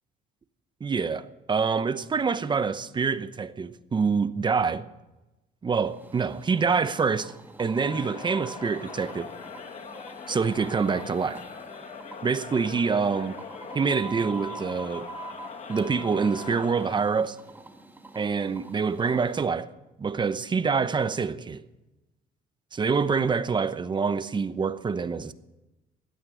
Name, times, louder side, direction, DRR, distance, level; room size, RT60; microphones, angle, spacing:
voice 1, 0.8-4.9 5.6-7.3 7.6-9.3 10.3-11.4 12.2-13.4 13.7-15.1 15.7-17.4 18.2-19.7 20.0-21.6 22.7-25.3, right 5 dB, 25° right, 0.9 m, -26 dB
sound 1, 5.8-19.4, right 2 dB, 10° right, 1.7 m, -45 dB
sound 2, 7.8-17.0, left 5 dB, 45° left, 2.0 m, -41 dB
17.0 x 12.0 x 6.3 m
cardioid pair, 110°, 17 cm